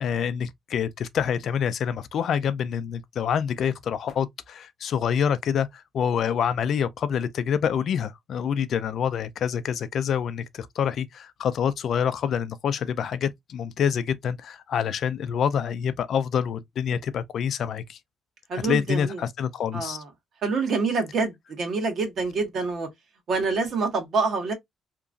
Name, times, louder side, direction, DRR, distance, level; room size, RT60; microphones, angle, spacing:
voice 1, 0.0-18.0 18.5-20.0, left 8 dB, 65° left, 0.4 m, -27 dB
voice 2, 18.5-19.2 19.7-20.1 20.4-22.9 23.3-24.5, right 4 dB, 65° right, 1.1 m, -26 dB
2.9 x 2.4 x 2.4 m
cardioid pair, 90°, 0 cm